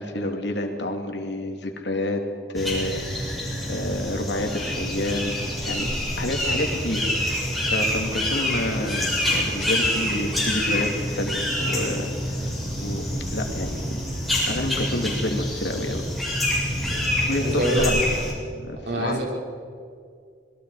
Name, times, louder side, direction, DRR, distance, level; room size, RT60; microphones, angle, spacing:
voice 1, 0.0-2.2 2.5-3.4 3.7-5.4 5.6-5.9 6.2-7.5 7.7-12.1 12.4-12.5 12.8-13.0 13.3-14.0 14.5-16.1 17.3-18.1 18.7-19.2, left 1 dB, 80° left, 4 dB, 2.8 m, -29 dB
sound 1, 2.6-18.3, left 1 dB, ahead, 6.7 m, -26 dB
voice 2, 17.4-17.9 18.9-19.2, right 1 dB, 90° right, -2 dB, 5.8 m, -25 dB
27.0 x 21.0 x 4.9 m, 2.2 s
head